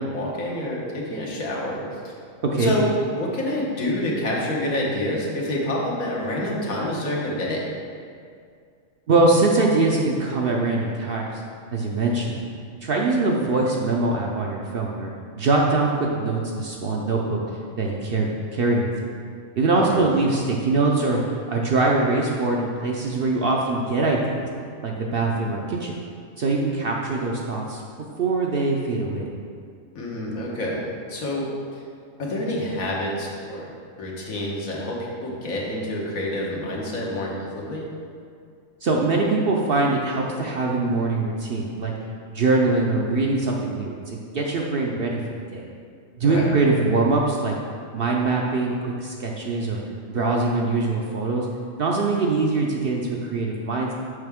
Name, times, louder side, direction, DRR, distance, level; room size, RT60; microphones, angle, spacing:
voice 1, 0.0-2.2 2.6-2.9 3.2-7.7 19.7-20.1 29.9-31.8 32.2-33.7 34.0-37.9 46.2-46.5, left 1 dB, 80° left, -3 dB, 1.6 m, -28 dB
voice 2, 2.4-2.7 9.1-11.4 11.7-12.4 12.8-15.1 15.4-17.4 17.8-18.3 18.5-18.9 19.6-24.4 24.8-25.9 26.4-27.8 28.2-29.3 38.8-41.9 42.3-45.2 45.5-45.6 46.2-47.5 47.9-49.8 50.1-51.5 51.8-53.9, right 3 dB, 60° right, -1 dB, 0.6 m, -22 dB
6.6 x 5.6 x 3.5 m, 2.2 s
omnidirectional pair, 1.4 m